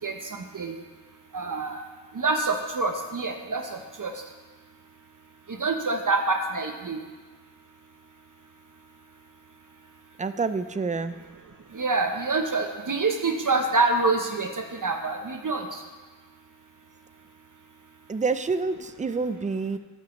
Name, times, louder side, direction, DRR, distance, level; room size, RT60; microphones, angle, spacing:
voice 1, 1.3-1.8 2.1-4.1 5.6-7.0 11.7-15.8, right 3 dB, 45° right, 3 dB, 0.8 m, -26 dB
voice 2, 10.2-11.2 18.1-19.8, right 4 dB, 20° right, 11 dB, 0.3 m, -27 dB
13.0 x 5.7 x 3.0 m, 1.3 s
wide cardioid pair, 55°, 44 cm